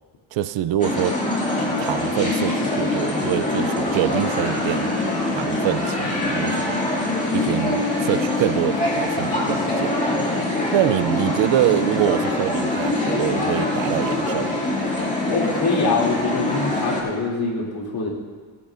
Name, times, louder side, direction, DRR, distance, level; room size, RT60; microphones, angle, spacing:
voice 1, 0.3-1.2 1.8-4.9 5.3-6.8 7.3-10.1 10.7-14.6, right 12 dB, 75° right, 15 dB, 0.6 m, -25 dB
sound 1, 0.8-17.0, left 2 dB, 15° left, 2.3 m, -24 dB
voice 2, 15.3-18.1, left 3 dB, 50° left, -3 dB, 2.8 m, -24 dB
18.0 x 10.5 x 2.5 m, 1.5 s
cardioid pair, 135°, 46 cm